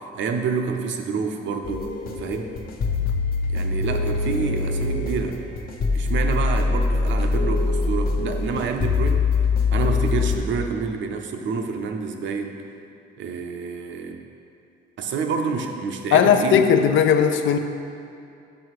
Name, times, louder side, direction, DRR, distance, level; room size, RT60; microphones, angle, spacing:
voice 1, 0.0-1.9 2.2-2.6 3.5-5.4 5.9-9.3 9.7-12.7 13.2-14.2 15.0-16.7, right 5 dB, 70° right, 4 dB, 0.7 m, -28 dB
sound 1, 1.6-10.4, left 3 dB, 50° left, 0.8 m, -23 dB
voice 2, 16.1-17.6, left 7 dB, 75° left, 7 dB, 0.5 m, -17 dB
6.2 x 5.7 x 4.7 m, 2.6 s
cardioid pair, 90°, 20 cm